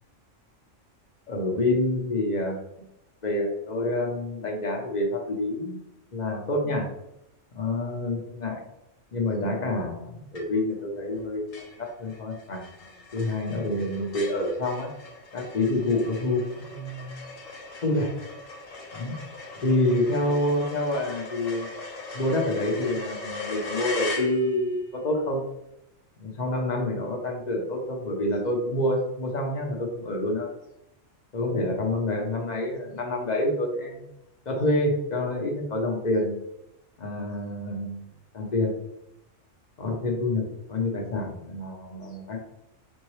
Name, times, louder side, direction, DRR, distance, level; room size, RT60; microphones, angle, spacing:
voice 1, 1.3-2.6 3.2-5.8 6.1-6.9 7.5-8.6 9.1-12.7 13.1-14.9 15.3-16.4 16.7-17.3 17.8-18.1 18.9-19.2 19.6-21.7 22.1-25.4 26.2-30.5 31.3-34.0 34.5-36.4 37.0-38.0 38.3-38.7 39.8-40.4 40.7-42.4, left 1 dB, 40° left, 1 dB, 0.7 m, -27 dB
sound 1, 10.3-10.8 11.1-11.2 11.5-24.8, left 3 dB, 90° left, 1.3 m, -39 dB
4.5 x 2.9 x 3.1 m, 0.84 s
omnidirectional pair, 1.3 m